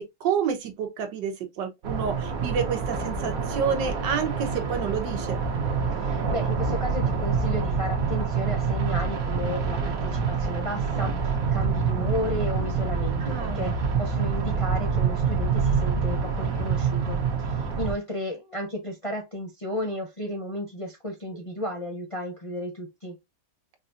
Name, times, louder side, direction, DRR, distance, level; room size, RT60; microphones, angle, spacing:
voice 1, 0.0-5.4 13.2-13.7, right 7 dB, 85° right, 1.6 m, -29 dB
sound 1, 1.8-17.9, right 5 dB, 60° right, 1.3 m, -26 dB
voice 2, 6.0-23.2, left 1 dB, 25° left, 0.7 m, -33 dB
5.1 x 2.5 x 2.6 m
omnidirectional pair, 1.9 m